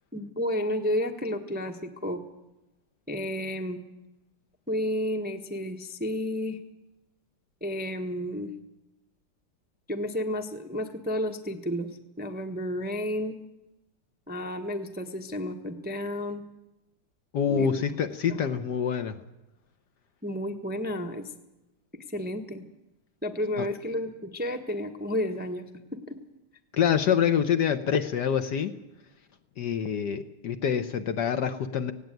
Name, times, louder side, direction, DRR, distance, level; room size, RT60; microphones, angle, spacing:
voice 1, 0.1-2.2 3.1-3.8 4.7-6.6 7.6-8.5 9.9-13.4 14.3-16.4 17.5-17.7 18.3-18.5 20.2-21.3 21.9-22.6 23.2-25.6 25.9-26.2, left 1 dB, 5° right, 5 dB, 0.8 m, -31 dB
voice 2, 17.3-19.2 23.6-23.7 26.7-28.7 29.6-31.9, left 8 dB, 60° left, 9 dB, 1.3 m, -26 dB
17.5 x 17.0 x 9.2 m, 0.98 s
omnidirectional pair, 2.3 m